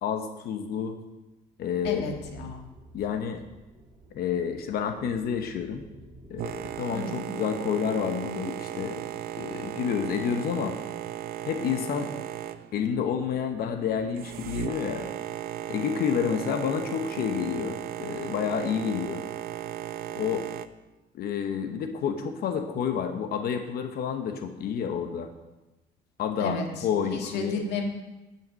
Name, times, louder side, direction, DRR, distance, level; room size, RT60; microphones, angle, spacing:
voice 1, 0.0-0.9 1.6-2.0 2.9-3.4 4.1-5.8 6.3-9.0 9.4-10.8 11.5-12.1 12.7-15.1 15.7-19.2 20.2-20.5 21.1-25.3 26.2-27.6, left 7 dB, 65° left, 6 dB, 1.0 m, -29 dB
voice 2, 1.8-2.7 6.9-7.4 26.4-26.9 27.1-27.9, left 3 dB, 80° left, 2 dB, 1.9 m, -33 dB
sound 1, 1.8-6.8, right 2 dB, 20° right, 2.3 m, -50 dB
Boat Water vehicle, 6.4-20.7, right 11 dB, 65° right, 0.6 m, -36 dB
10.5 x 5.8 x 6.3 m, 1.0 s
cardioid pair, 110°, 17 cm